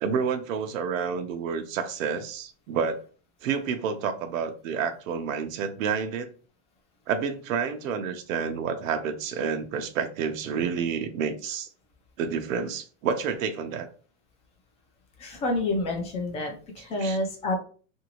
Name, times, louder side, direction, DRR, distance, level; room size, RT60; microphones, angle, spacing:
voice 1, 0.0-3.0 3.4-6.3 7.1-11.7 12.2-13.9 17.0-17.2, right 6 dB, 85° right, 7 dB, 0.7 m, -29 dB
voice 2, 15.2-17.6, left 2 dB, 15° left, 2 dB, 0.4 m, -28 dB
2.8 x 2.7 x 2.9 m, 0.39 s
supercardioid pair, 150°, 39 cm